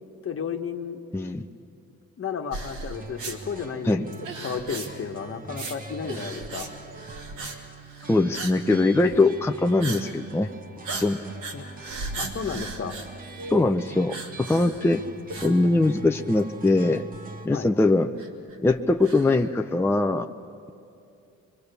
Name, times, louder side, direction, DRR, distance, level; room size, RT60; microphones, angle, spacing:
voice 1, 0.2-1.0 2.2-6.7 11.5-11.7 12.2-13.0 17.5-17.7, left 6 dB, 45° left, 6 dB, 1.4 m, -33 dB
voice 2, 1.1-1.5 3.8-4.0 8.1-10.5 11.0-11.2 13.5-15.0 15.4-17.0 17.4-18.1 18.6-20.3, left 2 dB, 10° left, 5 dB, 0.6 m, -22 dB
sound 1, 2.5-3.4 4.1-5.1 5.5-5.8 6.0-6.7 7.0-7.6 7.8-8.6 8.9-9.2 9.8-10.0 10.3-10.5 10.8-13.7 14.1-14.9 15.3-16.1 16.4-16.5 17.1-17.2 18.2-19.5, right 3 dB, 75° right, 2.9 m, -36 dB
sound 2, 2.9-17.5, right 3 dB, 30° right, 1.2 m, -42 dB
24.0 x 23.0 x 6.9 m, 2.6 s
cardioid pair, 90°, 30 cm